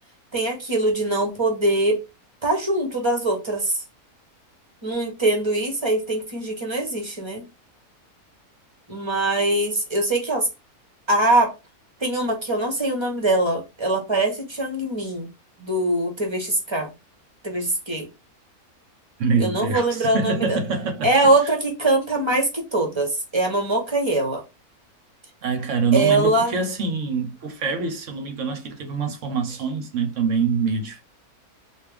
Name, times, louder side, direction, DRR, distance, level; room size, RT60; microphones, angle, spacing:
voice 1, 0.3-2.0 2.4-3.8 4.8-7.4 8.9-10.5 11.1-11.5 12.0-15.3 15.6-16.9 17.4-18.1 19.4-20.6 21.0-24.4 25.9-26.5, right 2 dB, 20° right, 0.8 m, -22 dB
voice 2, 19.2-21.1 21.4-21.5 25.4-31.0, right 5 dB, 60° right, 1.0 m, -25 dB
3.5 x 2.5 x 3.4 m
omnidirectional pair, 1.6 m